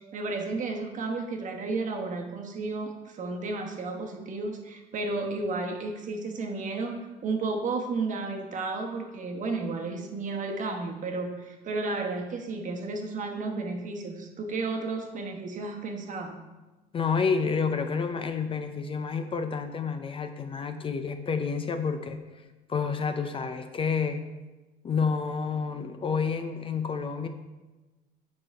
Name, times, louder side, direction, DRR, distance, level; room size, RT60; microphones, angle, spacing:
voice 1, 0.0-16.4, right 3 dB, 50° right, 2 dB, 1.1 m, -33 dB
voice 2, 16.9-22.4 22.7-24.2 24.8-27.3, left 5 dB, 30° left, 8 dB, 0.5 m, -29 dB
7.3 x 4.7 x 4.4 m, 1.2 s
cardioid pair, 110°, 17 cm